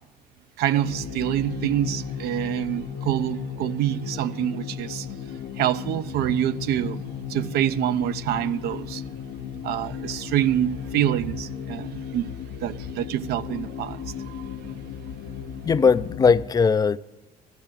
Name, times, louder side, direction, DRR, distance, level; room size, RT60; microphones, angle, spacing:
voice 1, 0.6-5.1 5.6-9.0 9.6-12.3 12.6-14.7, right 12 dB, 70° right, 0.4 m, -26 dB
sound 1, 0.8-16.5, left 8 dB, 70° left, 0.8 m, -35 dB
voice 2, 15.6-17.0, left 5 dB, 25° left, 0.3 m, -19 dB
13.5 x 6.6 x 8.9 m
cardioid pair, 110°, 17 cm